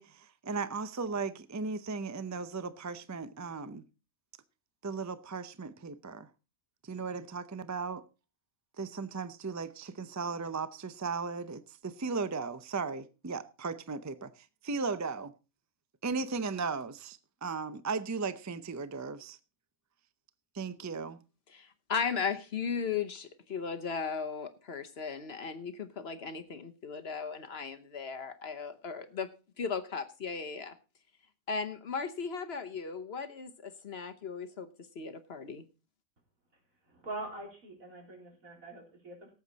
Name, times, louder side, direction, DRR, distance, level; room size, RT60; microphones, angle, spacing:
voice 1, 0.0-3.8 4.8-6.3 6.8-8.0 8.8-15.3 16.0-19.4 20.5-21.2, right 4 dB, 25° right, 0.4 m, -36 dB
voice 2, 21.5-29.3 29.6-30.7 31.5-34.7 34.9-35.6, left 6 dB, 50° left, 1.1 m, -36 dB
voice 3, 36.9-39.3, right 2 dB, 80° right, 4.2 m, -43 dB
18.0 x 8.0 x 4.0 m
omnidirectional pair, 1.4 m